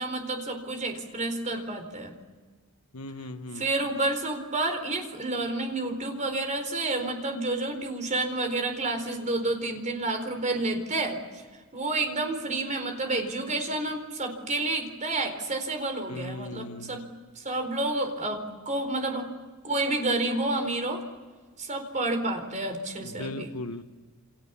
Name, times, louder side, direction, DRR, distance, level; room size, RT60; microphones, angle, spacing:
voice 1, 0.0-2.1 3.5-11.2 11.7-17.0 17.4-19.3 19.6-21.0 21.6-23.5, right 2 dB, 35° right, 6 dB, 4.3 m, -30 dB
voice 2, 2.9-3.7 16.1-17.1 23.0-23.8, left 2 dB, 85° left, 9 dB, 1.3 m, -38 dB
29.0 x 28.0 x 7.1 m, 1.4 s
head